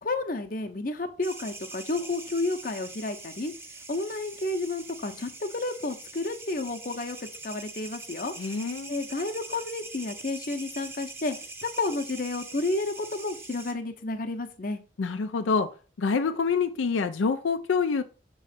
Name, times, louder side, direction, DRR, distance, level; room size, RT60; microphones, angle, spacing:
voice 1, 0.0-3.5 3.9-8.3 8.9-11.4 11.6-14.8, left 2 dB, 45° left, 0.7 m, -31 dB
sound 1, 1.2-13.7, right 3 dB, 15° right, 0.7 m, -43 dB
voice 2, 8.4-9.0 15.0-15.7 16.0-18.0, left 5 dB, 85° left, 0.4 m, -26 dB
6.6 x 3.1 x 5.0 m
head